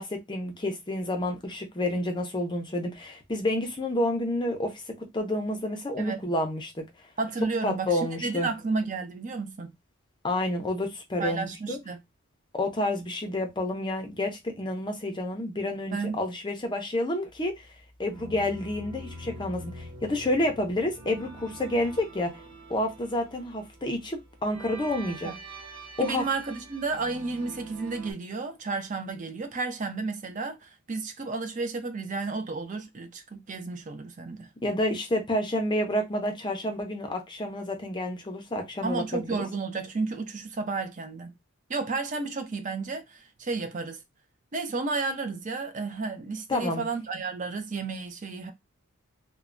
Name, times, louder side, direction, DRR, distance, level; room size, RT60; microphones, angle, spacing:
voice 1, 0.0-6.8 7.6-8.5 10.2-11.8 12.5-17.7 18.0-22.3 22.7-25.3 26.0-26.2 34.6-39.4 46.5-46.8, left 1 dB, 20° left, 0.5 m, -29 dB
voice 2, 7.2-9.7 11.2-12.0 15.9-16.2 25.2-25.4 26.0-34.5 38.8-41.3 41.7-44.0 44.5-48.5, right 3 dB, 35° right, 0.4 m, -32 dB
sound 1, 18.1-28.1, right 1 dB, 65° right, 1.5 m, -44 dB
3.1 x 2.1 x 2.4 m
head